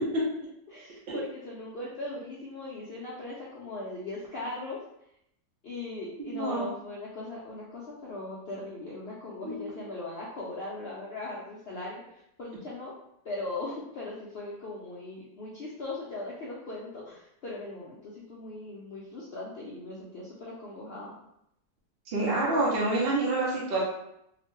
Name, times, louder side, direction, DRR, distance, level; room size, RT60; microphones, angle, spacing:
voice 1, 0.7-4.8 5.6-12.9 13.2-21.1, left 2 dB, 70° left, -6 dB, 0.5 m, -39 dB
voice 2, 6.3-6.7 9.4-9.6 22.1-23.8, right 2 dB, 55° right, -5 dB, 0.7 m, -27 dB
2.8 x 2.1 x 3.0 m, 0.78 s
omnidirectional pair, 1.7 m